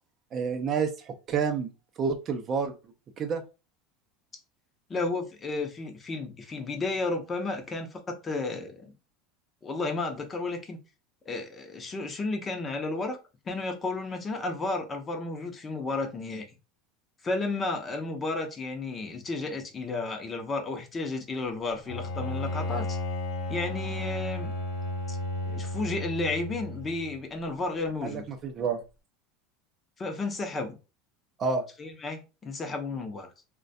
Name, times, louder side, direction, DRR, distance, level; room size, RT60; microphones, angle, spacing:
voice 1, 0.3-1.7 2.0-2.7 3.2-3.4 28.0-28.8 31.4-31.6, right 5 dB, 40° right, 0.5 m, -29 dB
voice 2, 4.9-8.9 9.6-10.8 11.3-13.2 13.5-16.4 17.2-23.0 23.5-24.5 25.1-25.2 25.5-28.2 30.0-30.8 31.8-33.3, left 3 dB, 25° left, 0.6 m, -32 dB
Bowed string instrument, 21.9-27.2, left 2 dB, 75° left, 0.8 m, -33 dB
2.3 x 2.2 x 2.6 m
supercardioid pair, 105°, 0 cm